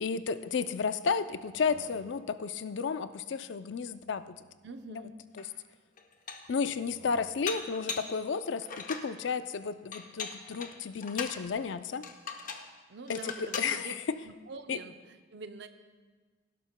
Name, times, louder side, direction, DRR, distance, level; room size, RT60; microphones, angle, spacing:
voice 1, 0.0-4.2 4.9-5.0 5.4-5.5 6.5-12.0 13.1-14.2 14.7-14.8, left 5 dB, 65° left, 12 dB, 0.4 m, -32 dB
sound 1, 1.4-2.5 3.7-5.4 6.7-7.7, equal, 45° right, 1.3 m, -57 dB
voice 2, 4.6-5.2 12.9-13.9 14.2-15.7, right 3 dB, 65° right, 8 dB, 0.6 m, -45 dB
Dishes pots and pans, 5.4-5.5 6.0-6.6 7.5-8.2 8.6-9.1 9.9-11.4 12.0-12.7 13.1-13.7, left 5 dB, 45° left, 0.8 m, -39 dB
17.0 x 11.5 x 2.2 m, 1.4 s
head